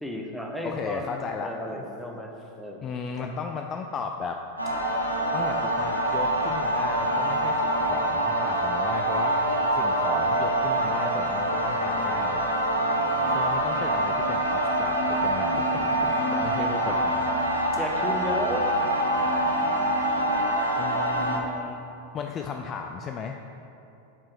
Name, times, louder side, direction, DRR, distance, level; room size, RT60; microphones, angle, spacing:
voice 1, 0.0-2.9 16.3-17.0 17.8-18.7 19.5-19.6, equal, ahead, 0 dB, 0.8 m, -34 dB
voice 2, 0.6-1.5 2.8-4.4 5.3-12.4 13.3-16.0 16.4-17.2 20.8-21.8 22.1-23.4, left 5 dB, 30° left, 4 dB, 0.3 m, -35 dB
sound 1, 4.6-21.4, right 1 dB, 90° right, 0.8 m, -25 dB
7.1 x 4.7 x 4.5 m, 2.8 s
figure-of-eight pair, 90°, 0 cm